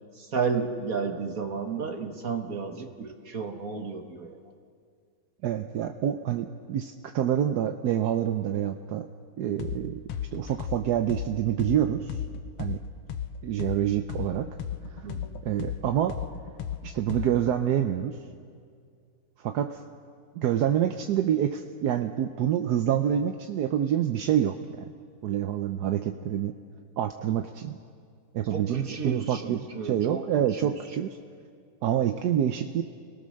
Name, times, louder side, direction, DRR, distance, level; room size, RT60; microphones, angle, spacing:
voice 1, 0.1-4.4 15.0-15.4 28.5-31.0, right 5 dB, 45° right, 5 dB, 1.6 m, -33 dB
voice 2, 5.4-9.1 9.4-10.0 10.3-12.1 12.6-12.8 13.4-14.5 14.9-15.1 15.4-16.2 16.8-18.2 19.4-19.8 20.4-24.9 25.2-26.5 27.0-27.8 28.3-31.1 31.8-32.8, right 10 dB, 65° right, 6 dB, 1.0 m, -27 dB
sound 1, 9.6-9.8 10.1-13.8 14.1-17.5, left 9 dB, 80° left, 1.8 m, -34 dB
30.0 x 18.0 x 6.4 m, 2.2 s
omnidirectional pair, 2.4 m